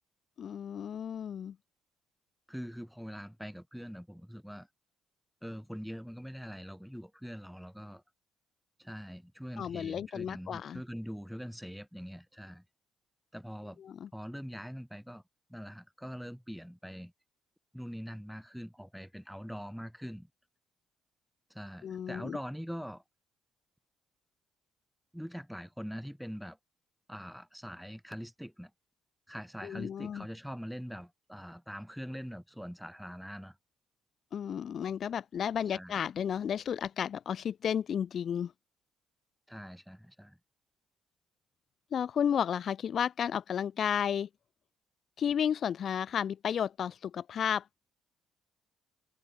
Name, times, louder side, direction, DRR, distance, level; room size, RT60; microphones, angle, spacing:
voice 1, 0.4-1.5 9.6-10.8 13.8-14.1 21.8-22.4 29.6-30.2 34.3-38.5 41.9-44.3 45.2-47.7, left 8 dB, 55° left, 0.4 m, -32 dB
voice 2, 2.5-4.7 5.4-8.0 8.8-12.6 13.3-13.8 14.1-15.2 15.5-17.1 17.7-20.3 21.5-23.0 25.1-26.6 27.1-28.7 29.3-33.6 35.7-35.9 39.5-40.4, equal, ahead, 1.2 m, -43 dB
cardioid pair, 95°, 0 cm